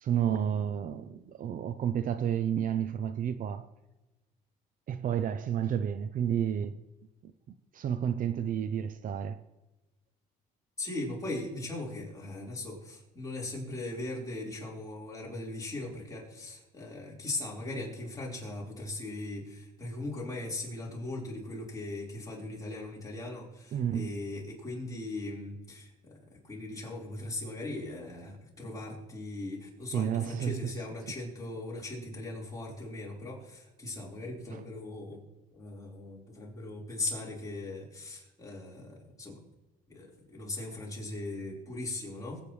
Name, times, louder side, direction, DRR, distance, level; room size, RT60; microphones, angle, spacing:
voice 1, 0.0-3.7 4.9-6.8 7.2-9.4 23.7-24.1 29.9-30.7 34.5-34.6, right 9 dB, 55° right, 0.7 m, -31 dB
voice 2, 10.8-25.9 26.4-35.2 35.5-39.4 39.9-42.4, left 2 dB, 20° left, 4.7 m, -39 dB
22.0 x 8.8 x 3.3 m
cardioid pair, 110°, 17 cm